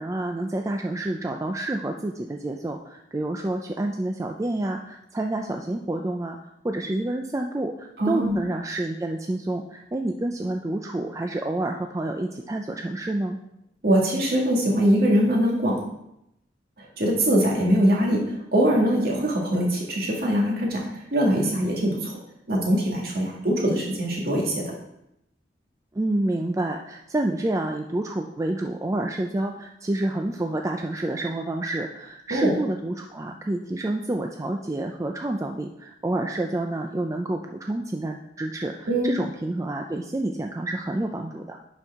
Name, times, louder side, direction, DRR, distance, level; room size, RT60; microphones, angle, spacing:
voice 1, 0.0-6.4 6.6-13.4 25.9-41.6, right 1 dB, 20° right, 3 dB, 0.4 m, -28 dB
voice 2, 8.0-8.3 13.8-15.8 16.8-22.1 22.5-24.6 32.3-32.5 38.9-39.1, equal, 55° right, -2 dB, 2.0 m, -22 dB
10.5 x 4.5 x 3.6 m, 0.80 s
head